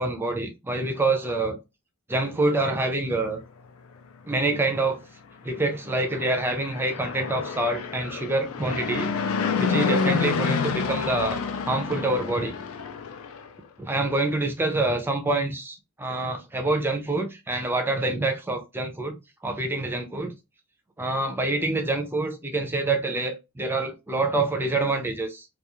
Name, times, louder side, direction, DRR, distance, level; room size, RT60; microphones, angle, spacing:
voice 1, 0.0-1.6 2.1-3.4 4.2-5.0 5.4-9.1 9.6-11.4 11.6-12.6 13.8-19.2 19.4-20.4 21.0-25.5, right 2 dB, 10° right, 0.4 m, -26 dB
Fixed-wing aircraft airplane, 6.1-13.5, left 5 dB, 80° left, 0.4 m, -28 dB
2.3 x 2.2 x 2.8 m
head